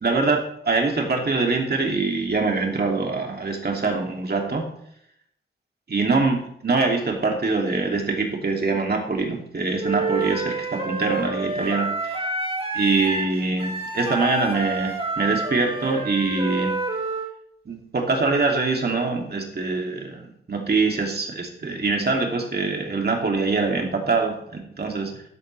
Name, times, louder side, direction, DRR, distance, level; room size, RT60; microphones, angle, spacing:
voice 1, 0.0-4.7 5.9-12.2 12.7-16.7 17.7-25.1, right 3 dB, 55° right, 1 dB, 2.6 m, -24 dB
Wind instrument woodwind instrument, 9.8-17.3, right 3 dB, 30° right, 2.1 m, -28 dB
14.0 x 11.5 x 3.3 m, 0.70 s
wide cardioid pair, 100°, 20 cm